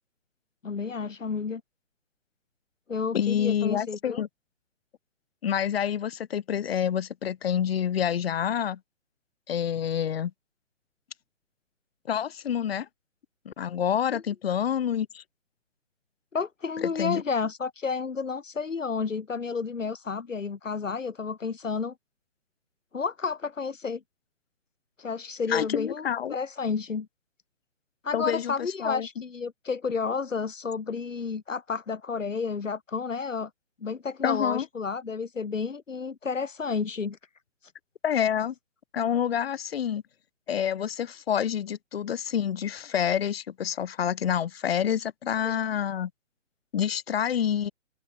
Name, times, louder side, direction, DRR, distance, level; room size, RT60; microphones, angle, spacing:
voice 1, 0.6-1.6 2.9-4.2 14.1-14.2 16.3-21.9 22.9-24.0 25.0-27.1 28.0-33.5 33.8-37.2 45.4-45.6, left 5 dB, 75° left, 3.5 m, -31 dB
voice 2, 3.1-4.3 5.4-8.8 9.5-10.3 12.1-12.9 13.4-15.2 16.9-17.2 25.5-26.3 28.1-28.5 28.8-29.1 34.2-34.7 38.0-38.5 38.9-40.0 40.5-46.1 46.7-47.7, left 9 dB, 50° left, 4.5 m, -27 dB
open air
figure-of-eight pair, 140°, 39 cm